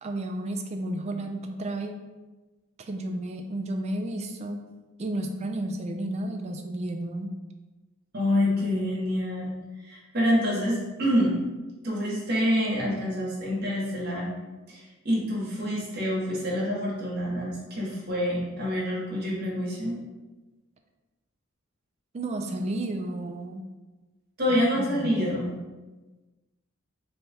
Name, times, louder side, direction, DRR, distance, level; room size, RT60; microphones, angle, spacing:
voice 1, 0.0-1.9 2.8-4.6 5.0-7.4 22.1-23.6 24.5-25.2, right 1 dB, 30° right, 4 dB, 0.3 m, -32 dB
voice 2, 8.1-9.5 9.8-11.4 11.8-14.3 14.7-20.0 24.4-25.5, equal, 55° right, -5 dB, 1.2 m, -27 dB
3.2 x 2.3 x 4.1 m, 1.2 s
head